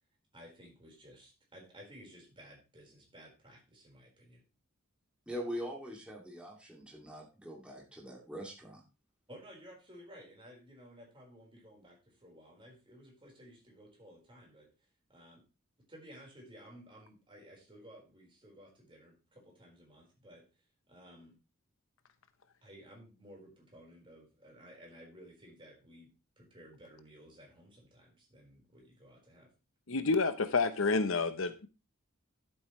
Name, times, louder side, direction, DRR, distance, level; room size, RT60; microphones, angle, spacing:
voice 1, 0.3-4.4 9.3-14.7 15.1-15.4 15.9-20.4 20.9-21.3 22.6-26.1 26.4-29.5, equal, 25° right, -1 dB, 4.5 m, -55 dB
voice 2, 5.3-8.8, equal, 5° right, -2 dB, 2.5 m, -42 dB
voice 3, 29.9-31.7, left 4 dB, 65° left, 10 dB, 0.9 m, -29 dB
12.0 x 7.9 x 3.2 m, 0.30 s
head